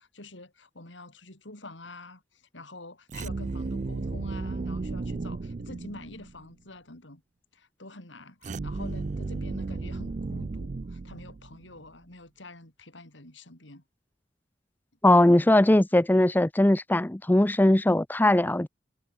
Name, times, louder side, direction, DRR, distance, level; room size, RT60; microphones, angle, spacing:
voice 1, 0.0-7.2 7.5-13.8, left 2 dB, 85° left, 5.8 m, -47 dB
sound 1, 3.1-6.4 8.4-11.7, right 3 dB, 40° right, 0.4 m, -34 dB
voice 2, 15.0-18.7, left 1 dB, 10° left, 0.5 m, -20 dB
head